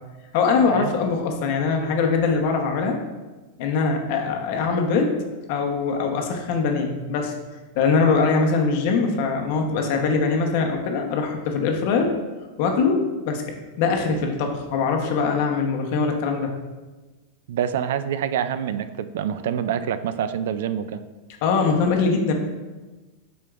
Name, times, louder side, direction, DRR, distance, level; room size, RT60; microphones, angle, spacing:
voice 1, 0.3-3.0 3.6-5.2 5.5-7.3 7.7-12.1 12.6-13.4 13.8-16.5 21.4-22.3, left 4 dB, 50° left, 3 dB, 0.9 m, -22 dB
voice 2, 17.5-21.0, right 9 dB, 75° right, 12 dB, 0.3 m, -26 dB
7.7 x 5.0 x 2.4 m, 1.2 s
supercardioid pair, 160°, 0 cm